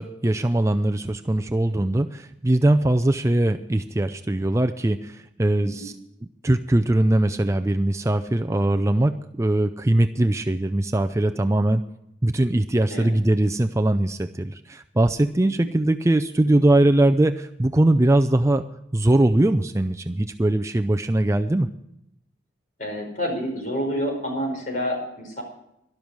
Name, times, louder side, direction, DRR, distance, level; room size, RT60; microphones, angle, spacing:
voice 1, 0.0-5.9 6.4-11.8 12.2-18.6 18.9-21.7, right 1 dB, 15° right, 8 dB, 0.4 m, -21 dB
voice 2, 22.8-25.4, equal, 45° left, 2 dB, 5.1 m, -28 dB
12.5 x 12.0 x 6.2 m, 0.82 s
head